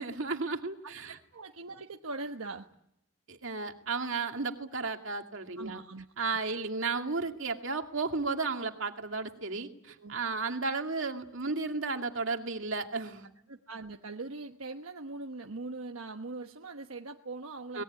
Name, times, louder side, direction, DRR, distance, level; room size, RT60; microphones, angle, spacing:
voice 1, 0.0-1.2 3.3-5.8 6.2-13.3 17.7-17.8, right 4 dB, 65° right, 4 dB, 2.4 m, -33 dB
voice 2, 0.8-2.7 5.6-6.1 10.0-10.2 13.5-17.8, right 3 dB, 85° right, 4 dB, 1.2 m, -41 dB
24.0 x 20.5 x 9.7 m, 0.80 s
head